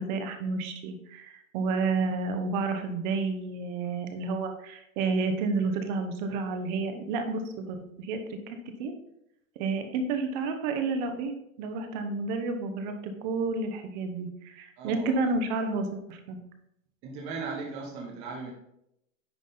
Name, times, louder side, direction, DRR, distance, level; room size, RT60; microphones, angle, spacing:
voice 1, 0.0-8.2 8.5-8.9 9.6-11.3 11.6-12.9 13.2-16.4, right 3 dB, 35° right, 6 dB, 0.9 m, -30 dB
voice 2, 14.8-15.2 17.0-18.5, right 4 dB, 15° right, -2 dB, 0.4 m, -37 dB
9.6 x 3.5 x 3.8 m, 0.80 s
hypercardioid pair, 150°, 42 cm